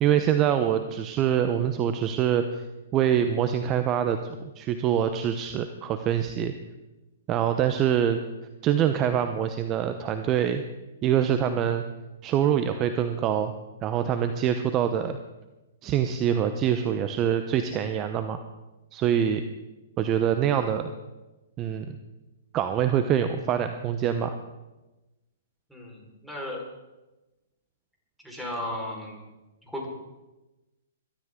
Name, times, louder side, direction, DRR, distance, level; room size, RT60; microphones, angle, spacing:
voice 1, 0.0-2.6 2.9-6.5 7.3-8.2 8.6-10.6 11.0-11.8 12.2-13.5 13.8-15.2 15.8-18.4 18.9-19.4 20.0-20.9 21.6-22.0 22.5-24.3, right 9 dB, 30° right, 8 dB, 0.9 m, -25 dB
voice 2, 25.7-26.6 28.2-29.2 29.6-29.9, left 1 dB, ahead, -2 dB, 4.8 m, -35 dB
22.0 x 12.5 x 3.8 m, 1.1 s
hypercardioid pair, 130°, 0 cm